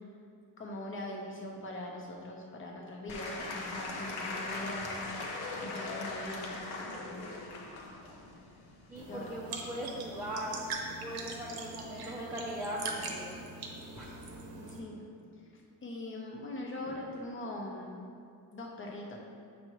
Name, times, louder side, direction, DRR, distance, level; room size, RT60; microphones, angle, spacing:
voice 1, 0.6-5.0 5.6-7.3 9.1-9.3 14.5-15.0 15.5-18.0 18.5-19.2, left 1 dB, 30° left, -1 dB, 0.9 m, -42 dB
Applause / Crowd, 3.1-9.4, left 3 dB, 80° left, 0.9 m, -40 dB
voice 2, 8.9-10.6 11.0-13.4 14.0-14.1, equal, 5° right, -6 dB, 0.6 m, -39 dB
sound 1, 9.0-14.8, right 3 dB, 70° right, 0.9 m, -42 dB
7.8 x 5.2 x 3.1 m, 2.4 s
cardioid pair, 150°, 38 cm